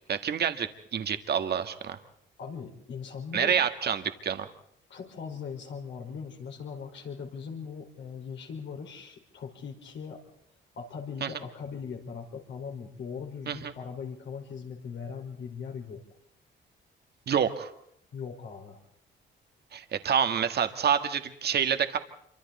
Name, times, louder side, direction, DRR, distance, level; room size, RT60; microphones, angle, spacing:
voice 1, 0.1-2.0 3.3-4.5 11.2-11.3 13.5-13.7 17.3-17.7 19.7-22.0, right 8 dB, 55° right, 8 dB, 1.7 m, -27 dB
voice 2, 2.4-3.6 4.9-10.2 10.8-16.0 18.1-18.8, left 6 dB, 70° left, 2 dB, 5.0 m, -40 dB
26.5 x 24.5 x 4.2 m, 0.71 s
cardioid pair, 90°, 20 cm